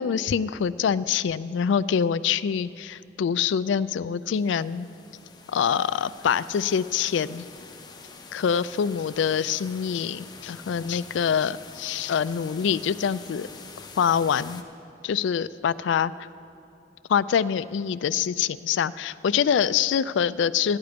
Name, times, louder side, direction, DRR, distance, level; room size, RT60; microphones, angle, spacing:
voice 1, 0.0-4.9 5.5-7.5 8.3-13.5 14.0-14.6 15.0-16.1 17.1-20.8, left 7 dB, 75° left, 16 dB, 0.3 m, -25 dB
sound 1, 4.3-14.6, left 4 dB, 20° left, 0.7 m, -46 dB
14.5 x 10.5 x 5.1 m, 2.7 s
head